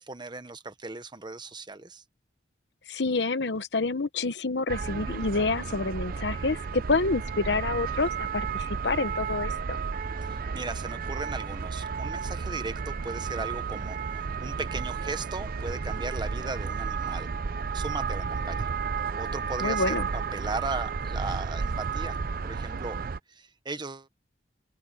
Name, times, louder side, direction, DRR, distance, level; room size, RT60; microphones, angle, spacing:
voice 1, 0.0-2.0 10.2-17.3 17.7-18.7 19.2-22.2 22.4-23.0 23.3-24.1, right 3 dB, 25° right, 1.2 m, -37 dB
voice 2, 2.9-9.8 19.6-20.1, left 3 dB, 70° left, 1.0 m, -28 dB
sound 1, 4.7-23.2, right 5 dB, 55° right, 0.5 m, -32 dB
open air
head